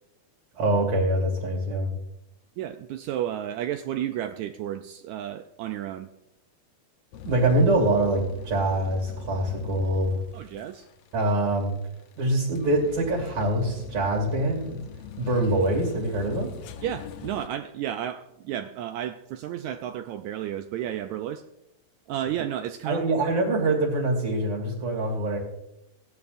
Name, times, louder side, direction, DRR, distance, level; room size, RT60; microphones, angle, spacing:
voice 1, 0.6-1.9 7.3-10.2 11.1-11.7 12.2-14.8 15.2-16.5 22.9-25.4, right 1 dB, 60° right, -2 dB, 3.6 m, -24 dB
voice 2, 2.6-6.1 10.3-10.9 16.8-21.4 22.1-23.2, right 11 dB, 80° right, 8 dB, 1.7 m, -32 dB
sound 1, 7.1-17.5, left 9 dB, 85° left, 1.4 m, -42 dB
17.0 x 11.0 x 2.6 m, 0.85 s
omnidirectional pair, 3.7 m